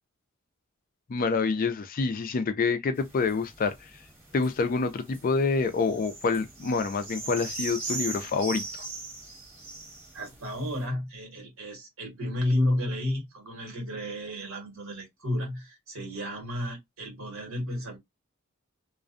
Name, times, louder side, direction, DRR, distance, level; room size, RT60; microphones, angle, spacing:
voice 1, 1.1-3.9 4.3-8.6, left 4 dB, 40° left, 0.4 m, -27 dB
sound 1, 3.0-10.8, right 3 dB, 10° right, 1.4 m, -40 dB
voice 2, 10.1-18.0, left 1 dB, 70° right, 1.3 m, -32 dB
2.5 x 2.2 x 2.4 m
head